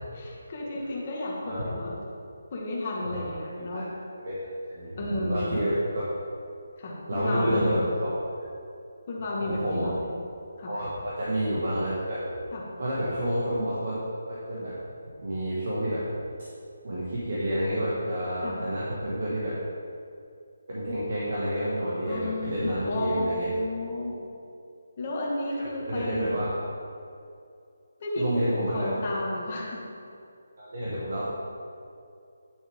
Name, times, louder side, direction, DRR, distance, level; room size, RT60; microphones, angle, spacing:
voice 1, 0.1-2.0 2.5-3.8 5.0-5.6 6.8-7.8 9.1-10.1 10.6-10.7 12.5-12.6 18.4-18.6 22.1-24.2 25.0-26.3 28.0-29.8, left 1 dB, 25° left, -3 dB, 1.5 m, -32 dB
voice 2, 4.7-6.0 7.1-7.8 9.4-9.9 10.7-12.2 12.8-13.9 14.3-14.8 15.2-16.0 16.8-19.6 20.7-23.5 25.8-26.6 28.2-29.0 30.6-31.3, equal, 50° right, -7 dB, 1.8 m, -29 dB
10.0 x 6.8 x 3.7 m, 2.5 s
hypercardioid pair, 175°, 0 cm